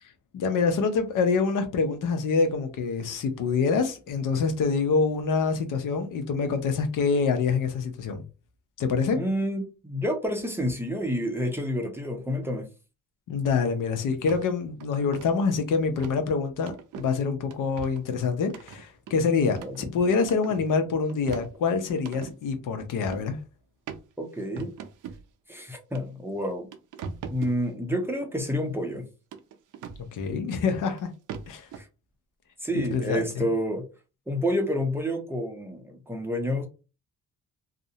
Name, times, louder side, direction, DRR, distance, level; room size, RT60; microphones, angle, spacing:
voice 1, 0.3-8.2 8.8-9.2 13.3-23.4 30.1-31.1 31.5-31.7 32.7-33.5, left 5 dB, 70° left, 0.6 m, -26 dB
voice 2, 9.1-12.7 19.6-19.9 24.2-24.7 25.5-26.7 27.3-29.1 31.8-31.9 32.6-33.9 34.3-36.7, equal, 5° right, 0.5 m, -29 dB
sound 1, 14.3-14.5 14.8-15.3 16.0-16.2 16.7-17.1 17.5-18.0 18.5-19.8 20.2-20.7 21.1-22.3 23.0-23.3 23.9-24.0 24.6-25.2 25.9-26.0 26.4-27.6 29.3-30.1 31.0-31.1 31.3-31.8, right 6 dB, 70° right, 0.5 m, -40 dB
2.5 x 2.0 x 2.7 m
cardioid pair, 105°, 32 cm